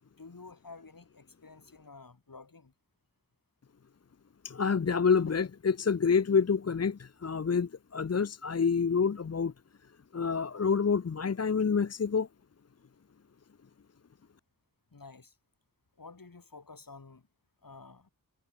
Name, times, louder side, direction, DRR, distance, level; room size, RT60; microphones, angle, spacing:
voice 1, 0.0-2.7 14.9-15.4 16.0-17.3 17.6-18.1, left 4 dB, 75° left, 4.6 m, -51 dB
voice 2, 4.4-9.5 10.1-12.3, left 5 dB, 45° left, 0.6 m, -27 dB
wide cardioid pair, 60°, 34 cm